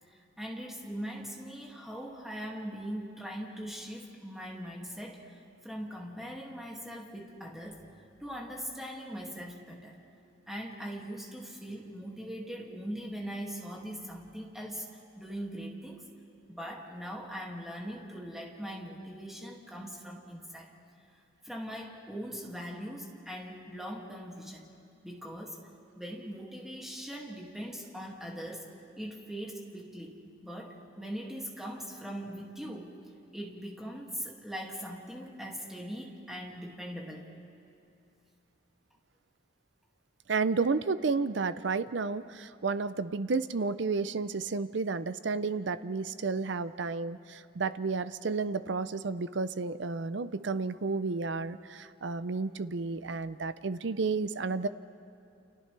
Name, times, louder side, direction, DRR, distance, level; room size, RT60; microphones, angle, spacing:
voice 1, 0.1-7.9 8.2-10.0 10.5-14.9 15.2-16.0 16.5-20.7 21.4-24.7 25.0-25.6 26.0-33.0 33.3-37.3, equal, ahead, -2 dB, 2.3 m, -41 dB
voice 2, 40.3-54.7, right 4 dB, 70° right, 13 dB, 0.6 m, -31 dB
29.5 x 29.0 x 3.4 m, 2.6 s
head